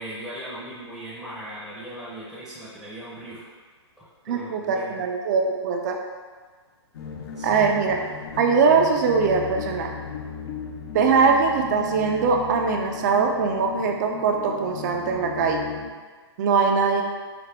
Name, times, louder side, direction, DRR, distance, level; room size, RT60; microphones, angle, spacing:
voice 1, 0.0-3.5 4.0-4.9 7.4-7.6, right 1 dB, 5° left, -10 dB, 0.7 m, -38 dB
voice 2, 4.3-6.0 7.4-8.0 8.4-9.9 10.9-15.6 16.4-17.0, right 5 dB, 40° right, 3 dB, 0.4 m, -21 dB
sound 1, 6.9-15.9, left 5 dB, 60° left, 0.5 m, -36 dB
4.8 x 2.1 x 3.3 m, 1.5 s
hypercardioid pair, 145°, 15 cm